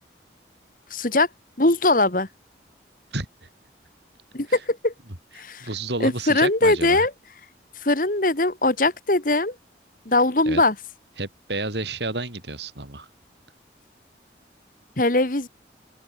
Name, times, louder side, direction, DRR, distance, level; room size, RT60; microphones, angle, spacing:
voice 1, 0.9-1.3 1.6-2.3 4.3-4.9 5.4-5.7 6.0-7.1 7.8-9.6 10.1-10.8 15.0-15.5, left 2 dB, 50° left, 2.0 m, -21 dB
voice 2, 5.6-7.1 10.5-10.6 11.2-13.1, right 2 dB, 75° right, 4.7 m, -30 dB
open air
head